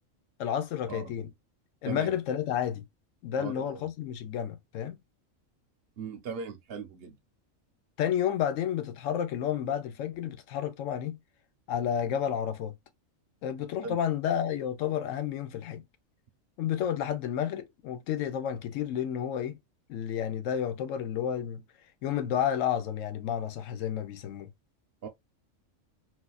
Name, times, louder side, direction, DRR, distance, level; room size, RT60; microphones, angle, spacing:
voice 1, 0.4-1.3 1.8-2.9 3.2-5.0 8.0-11.2 11.7-12.7 13.4-15.8 16.6-19.6 19.9-21.6 22.0-24.5, left 9 dB, 75° left, 1.0 m, -31 dB
voice 2, 1.9-2.2 3.4-3.8 6.0-7.2 13.8-14.0 25.0-25.1, right 5 dB, 55° right, 0.8 m, -39 dB
4.1 x 2.4 x 2.2 m
omnidirectional pair, 1.4 m